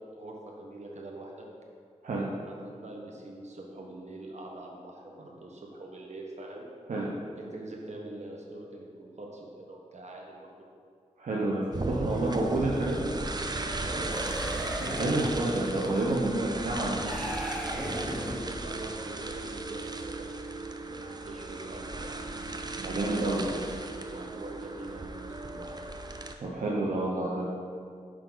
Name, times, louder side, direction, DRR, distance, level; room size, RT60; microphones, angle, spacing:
voice 1, 0.0-1.4 2.4-6.7 7.4-10.7 12.0-12.4 12.7-13.3 13.8-14.3 17.6-20.3 20.6-22.2 24.1-25.7 27.3-27.4, right 2 dB, 60° right, -1 dB, 1.3 m, -43 dB
voice 2, 11.2-11.6 11.9-13.1 14.8-17.2 22.8-23.5 26.4-27.4, right 2 dB, 80° right, -4 dB, 1.0 m, -29 dB
sound 1, 11.7-26.3, right 2 dB, 30° right, 0.6 m, -36 dB
sound 2, 14.0-15.6 17.0-18.6, equal, ahead, 1.2 m, -36 dB
9.6 x 5.1 x 4.0 m, 2.2 s
cardioid pair, 60°, 13 cm